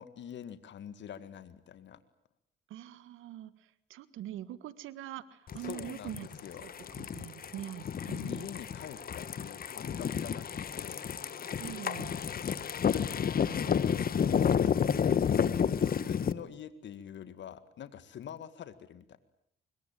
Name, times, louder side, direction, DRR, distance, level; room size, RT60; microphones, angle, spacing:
voice 1, 0.0-2.0 5.6-6.7 8.2-10.5 10.7-11.1 12.9-13.2 13.7-15.0 15.8-19.2, left 9 dB, 65° left, 13 dB, 2.0 m, -46 dB
voice 2, 2.7-6.3 6.6-6.7 7.0-8.5 11.6-12.1, right 12 dB, 90° right, 16 dB, 1.6 m, -43 dB
sound 1, 5.5-16.3, left 7 dB, 50° left, 1.4 m, -31 dB
25.0 x 22.5 x 9.1 m, 0.66 s
cardioid pair, 90°, 20 cm